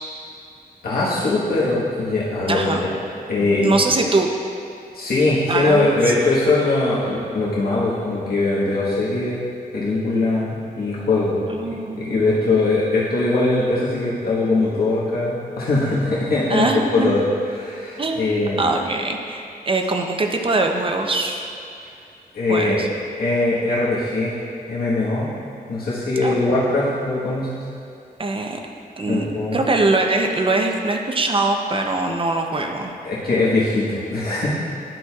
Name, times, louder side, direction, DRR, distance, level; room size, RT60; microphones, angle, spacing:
voice 1, 0.8-2.9 3.3-3.8 4.9-9.5 9.7-16.7 16.9-17.2 17.6-18.7 22.3-22.8 23.2-24.4 24.7-25.3 25.7-27.6 29.1-29.6 33.0-34.5, left 2 dB, 75° left, -7 dB, 1.4 m, -21 dB
voice 2, 2.5-2.9 3.4-4.3 5.5-6.1 11.5-12.1 16.5-17.1 18.0-21.5 22.5-22.9 26.2-26.3 28.2-28.6 29.0-29.3 29.5-32.9, right 2 dB, 35° right, 3 dB, 0.6 m, -22 dB
10.5 x 6.2 x 2.4 m, 2.5 s
wide cardioid pair, 115°, 16 cm